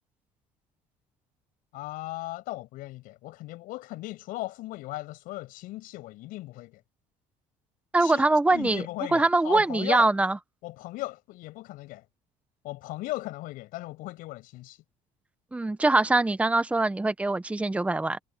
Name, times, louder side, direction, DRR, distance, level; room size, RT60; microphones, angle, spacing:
voice 1, 1.7-6.8 8.0-10.1 10.6-12.0 12.6-14.8, left 18 dB, 75° left, 6.8 m, -37 dB
voice 2, 7.9-8.8 9.1-10.4 15.5-18.2, right 2 dB, 10° right, 1.1 m, -23 dB
cardioid pair, 115°, 14 cm